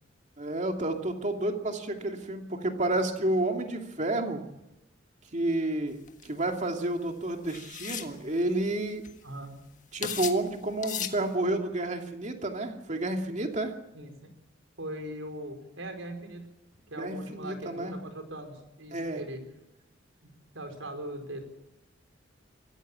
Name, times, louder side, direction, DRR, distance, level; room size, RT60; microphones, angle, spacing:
voice 1, 0.4-4.4 5.3-6.0 6.2-9.1 9.9-13.7 17.0-17.9 18.9-19.2, right 1 dB, 40° right, 4 dB, 2.6 m, -30 dB
sound 1, 6.1-6.3 7.5-8.1 8.8-8.9 9.0-9.4 10.0-10.4 10.8-11.2, left 9 dB, 40° left, 1.6 m, -35 dB
voice 2, 9.2-9.6 13.9-14.3 14.8-16.4 16.9-19.4 20.2-21.4, right 1 dB, 80° right, 5 dB, 4.9 m, -40 dB
23.5 x 15.0 x 8.7 m, 0.97 s
head